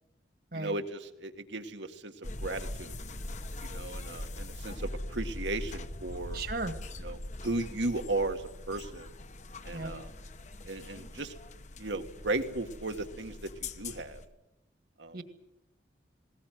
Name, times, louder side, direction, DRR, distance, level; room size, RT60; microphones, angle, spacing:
voice 1, 0.5-3.0 3.7-6.4 7.0-9.1 9.6-10.1 10.6-11.3 11.8-13.5 13.8-14.2 15.0-15.2, right 2 dB, 75° right, 7 dB, 1.8 m, -35 dB
sound 1, 2.2-14.3, left 1 dB, 40° left, 1.0 m, -42 dB
voice 2, 6.3-6.7 9.7-9.9 15.1-15.2, right 3 dB, 55° right, 9 dB, 1.9 m, -35 dB
19.5 x 18.5 x 9.3 m, 0.90 s
head